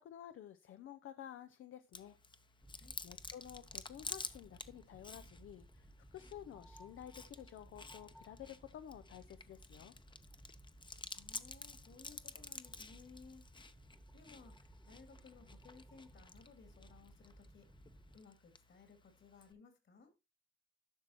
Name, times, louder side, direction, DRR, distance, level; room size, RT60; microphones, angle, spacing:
voice 1, 0.0-2.2 3.0-9.9, left 10 dB, 85° left, 0.5 m, -52 dB
Chewing mastication, 1.9-19.5, left 3 dB, 25° left, 0.7 m, -52 dB
sound 1, 2.6-18.2, right 1 dB, ahead, 1.0 m, -60 dB
voice 2, 11.1-13.7 14.1-17.7 18.1-20.1, left 5 dB, 70° left, 2.7 m, -60 dB
11.5 x 6.1 x 2.9 m
cardioid pair, 90°, 20 cm